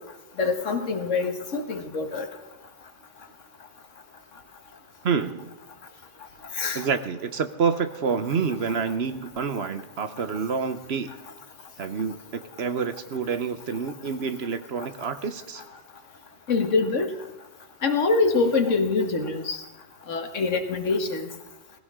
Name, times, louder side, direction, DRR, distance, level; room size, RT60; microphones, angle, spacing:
voice 1, 0.4-2.3 6.6-6.9 16.5-17.1 17.8-19.6 20.1-21.3, left 4 dB, 80° left, 6 dB, 1.8 m, -24 dB
voice 2, 5.0-5.5 6.7-11.2 11.8-15.6, right 6 dB, 60° right, 10 dB, 1.1 m, -28 dB
19.0 x 16.5 x 3.7 m, 1.1 s
omnidirectional pair, 1.3 m